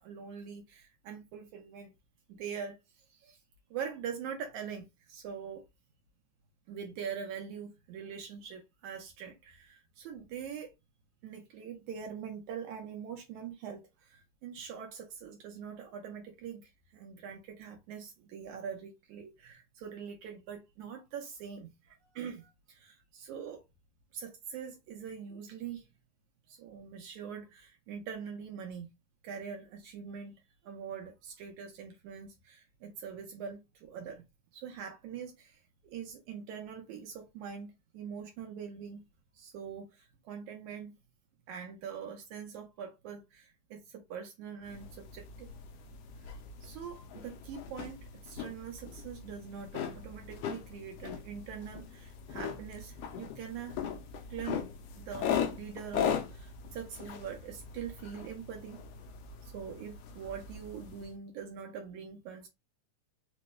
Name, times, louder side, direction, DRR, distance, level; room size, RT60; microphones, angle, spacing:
voice 1, 0.0-1.9 2.3-2.8 3.1-3.4 3.7-5.6 6.7-10.7 11.2-23.6 24.1-25.9 26.5-28.9 29.2-34.2 34.5-39.0 39.3-40.9 41.5-45.5 46.6-53.8 54.3-54.6 54.9-58.8 59.4-62.5, right 7 dB, 75° right, 2.1 m, -43 dB
sound 1, 44.6-61.1, left 8 dB, 80° left, 1.4 m, -39 dB
5.1 x 2.2 x 3.1 m
omnidirectional pair, 3.5 m